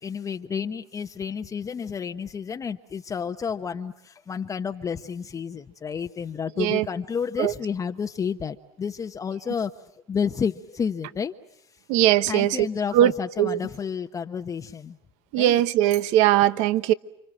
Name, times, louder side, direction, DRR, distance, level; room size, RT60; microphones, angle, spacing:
voice 1, 0.0-9.7 10.1-11.3 12.3-15.0 15.4-15.6, left 6 dB, 25° left, 1.0 m, -30 dB
voice 2, 11.9-12.7 12.9-13.1 13.4-13.6 15.3-16.9, right 13 dB, 60° right, 1.1 m, -20 dB
30.0 x 26.0 x 7.6 m
hypercardioid pair, 100°, 13 cm